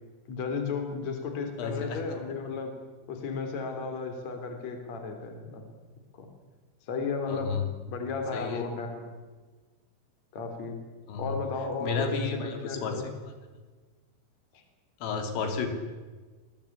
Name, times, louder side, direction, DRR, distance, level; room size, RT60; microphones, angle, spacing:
voice 1, 0.3-2.8 3.1-5.6 6.2-6.3 6.9-7.6 7.9-9.1 10.3-10.8 11.2-13.1 14.5-14.6, left 4 dB, 40° left, 6 dB, 4.1 m, -34 dB
voice 2, 1.6-2.0 7.3-7.6 8.3-8.6 11.1-11.4 11.8-13.0 15.0-15.7, left 5 dB, 80° left, 6 dB, 5.6 m, -32 dB
27.5 x 20.5 x 8.6 m, 1.4 s
omnidirectional pair, 5.8 m